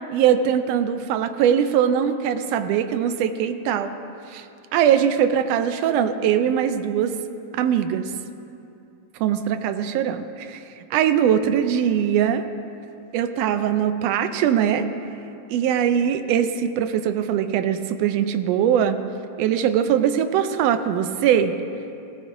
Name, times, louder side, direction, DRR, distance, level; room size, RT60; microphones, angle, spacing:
voice 1, 0.1-3.9 4.3-4.5 4.7-7.1 7.5-8.1 9.2-10.6 10.9-12.5 13.1-14.9 15.5-19.0 19.4-21.5, right 9 dB, 80° right, 9 dB, 1.5 m, -21 dB
16.5 x 15.0 x 2.6 m, 2.6 s
omnidirectional pair, 3.4 m